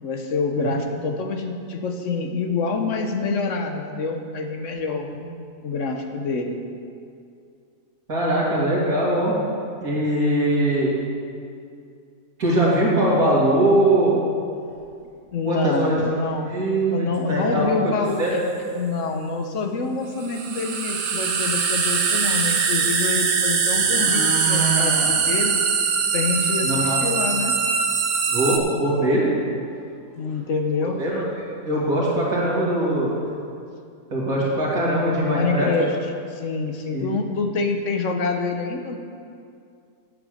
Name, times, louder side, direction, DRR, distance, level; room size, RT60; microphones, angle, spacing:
voice 1, 0.0-5.1 5.6-6.6 15.3-16.5 16.9-18.3 18.7-25.6 26.1-27.5 30.2-31.0 35.2-35.9 36.2-39.0, left 4 dB, 55° left, 4 dB, 1.0 m, -26 dB
voice 2, 8.1-9.4 9.8-10.9 12.4-14.1 15.4-16.0 16.4-17.9 18.2-18.3 26.6-27.0 28.3-29.4 30.8-31.2 31.7-33.1 34.1-35.7 36.9-37.1, right 1 dB, 60° right, -6 dB, 2.8 m, -21 dB
sound 1, 14.7-14.8 15.3-15.4 15.7-15.8 16.8-16.9 17.4-17.7 18.0-18.1 18.4-18.8 20.3-20.4 20.6-20.7 23.0-23.1 23.5-25.1 25.5-25.6 26.0-26.1 26.5-26.6 26.9-27.0 29.8-29.9 30.2-30.4 31.1-31.2 31.7-31.9 32.1-32.9 33.3-33.4, right 4 dB, 85° left, 4.0 m, -31 dB
sound 2, 18.1-18.2 20.2-28.6, right 5 dB, 85° right, 1.5 m, -22 dB
8.7 x 8.5 x 6.4 m, 2.4 s
omnidirectional pair, 1.7 m